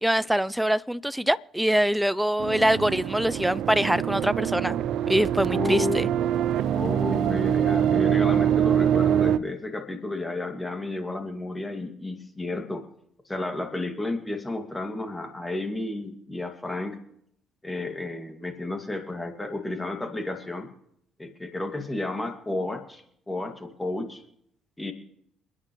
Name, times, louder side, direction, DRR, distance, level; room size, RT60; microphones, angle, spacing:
voice 1, 0.0-4.8 5.1-6.1, right 1 dB, 5° right, 0.6 m, -24 dB
sound 1, 2.4-9.4, right 10 dB, 70° right, 0.6 m, -24 dB
voice 2, 5.5-6.0 6.7-12.9 13.3-17.0 17.6-20.7 21.2-24.2 24.8-24.9, left 2 dB, 15° left, 2.4 m, -32 dB
28.5 x 9.8 x 3.2 m
hypercardioid pair, 60°, 0 cm